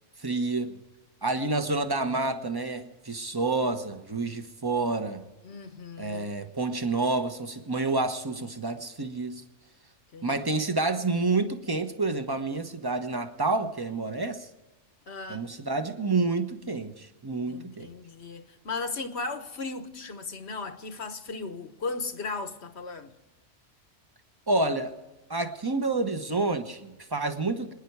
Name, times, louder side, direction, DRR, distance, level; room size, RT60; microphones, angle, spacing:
voice 1, 0.2-0.8 1.2-5.2 6.0-9.4 10.2-14.5 15.3-17.9 24.5-24.9 25.3-27.7, right 3 dB, 20° right, 1.1 m, -29 dB
voice 2, 5.4-6.4 10.1-10.4 15.1-15.5 17.5-23.2, left 3 dB, 60° left, 1.4 m, -36 dB
27.0 x 10.0 x 4.7 m
omnidirectional pair, 1.2 m